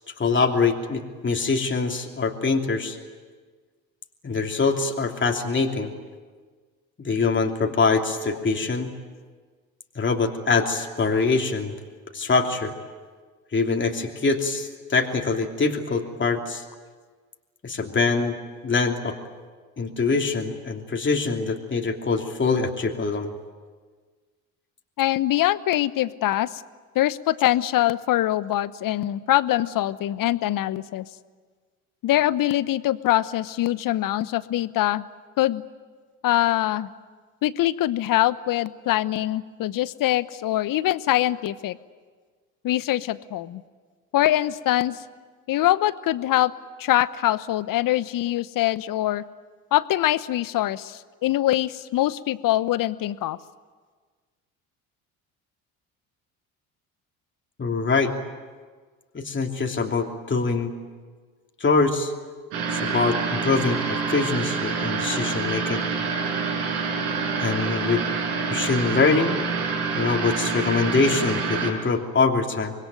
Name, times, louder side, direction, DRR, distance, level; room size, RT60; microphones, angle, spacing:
voice 1, 0.2-3.0 4.2-5.9 7.0-8.9 9.9-11.7 12.1-12.7 13.5-16.6 17.6-18.4 18.6-19.2 19.8-23.3 57.6-58.1 59.1-60.7 61.6-62.1 62.7-65.9 67.4-68.0 68.5-69.4 69.9-72.7, left 4 dB, 25° left, 2 dB, 3.0 m, -24 dB
voice 2, 25.0-26.6 26.9-31.0 32.0-35.0 35.4-35.6 36.2-36.9 37.4-41.8 42.6-43.6 44.1-45.0 45.5-46.5 46.8-49.2 49.7-53.4, left 14 dB, 50° left, 17 dB, 1.0 m, -23 dB
sound 1, 62.5-71.7, right 5 dB, 65° right, 5.9 m, -27 dB
25.5 x 21.0 x 9.3 m, 1.5 s
hypercardioid pair, 60°, 42 cm